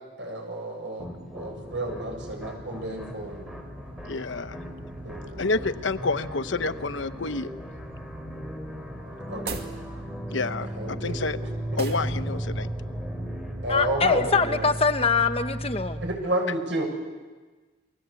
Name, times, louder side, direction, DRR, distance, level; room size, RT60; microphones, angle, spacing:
voice 1, 0.2-1.1 1.3-3.5 5.0-5.6 9.1-9.6 10.7-11.2 13.6-14.7 16.0-16.9, right 1 dB, 75° right, 2 dB, 7.4 m, -31 dB
sound 1, 1.0-14.6, equal, ahead, 3.6 m, -41 dB
sound 2, 1.5-16.2, right 1 dB, 30° right, 4.5 m, -37 dB
voice 2, 4.0-4.6 5.4-7.5 10.3-11.4 11.8-12.7, left 3 dB, 80° left, 11 dB, 1.0 m, -29 dB
sound 3, 9.3-9.8 11.8-12.1, right 4 dB, 55° right, 2.2 m, -35 dB
voice 3, 13.7-16.0, left 4 dB, 30° left, 8 dB, 1.0 m, -23 dB
29.0 x 22.0 x 8.4 m, 1.3 s
head